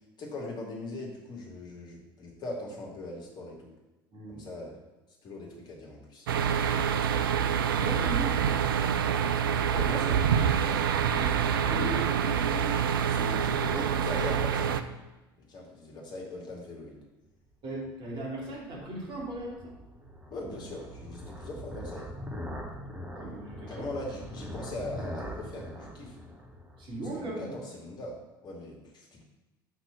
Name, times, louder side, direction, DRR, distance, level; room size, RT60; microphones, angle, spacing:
voice 1, 0.2-3.7 4.3-4.7 5.2-6.3 9.7-10.2 10.6-12.7 13.1-14.8 15.5-16.9 20.3-22.0 23.7-26.2 27.2-28.1 28.4-29.2, left 2 dB, 35° left, -1 dB, 2.2 m, -40 dB
voice 2, 4.1-4.5 7.7-8.4 17.6-19.6 23.2-23.9 26.8-27.4, right 2 dB, 40° right, -2 dB, 2.5 m, -37 dB
sound 1, 6.3-14.8, right 8 dB, 70° right, 0.5 m, -26 dB
sound 2, 17.8-27.3, equal, 10° right, 1.3 m, -42 dB
5.9 x 5.5 x 6.9 m, 1.1 s
figure-of-eight pair, 65°, 12 cm